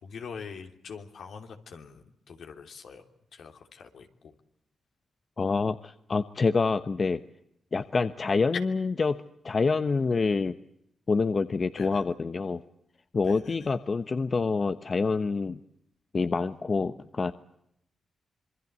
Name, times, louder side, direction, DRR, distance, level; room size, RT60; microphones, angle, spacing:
voice 1, 0.0-3.0 3.3-4.3 11.3-11.5 11.7-12.1 13.2-13.7, left 5 dB, 75° left, 5 dB, 3.1 m, -44 dB
voice 2, 5.4-7.2 7.7-10.6 11.1-12.6 13.1-15.6 16.1-17.3, left 4 dB, 45° left, 11 dB, 1.0 m, -27 dB
27.0 x 22.5 x 8.2 m, 0.76 s
cardioid pair, 55°, 0 cm